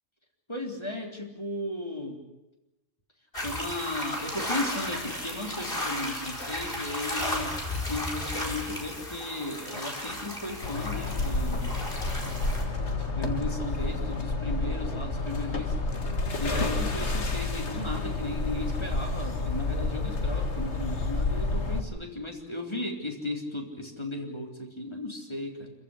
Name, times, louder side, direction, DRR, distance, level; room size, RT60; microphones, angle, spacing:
voice 1, 0.5-2.2 3.4-7.6 7.9-11.7 13.0-15.8 16.4-25.7, left 2 dB, 20° left, 1 dB, 3.9 m, -35 dB
sound 1, 3.3-12.6, left 1 dB, 45° left, 4.8 m, -34 dB
sound 2, 10.6-21.8, left 2 dB, 65° left, 2.2 m, -30 dB
27.0 x 15.0 x 9.9 m, 1.0 s
omnidirectional pair, 1.3 m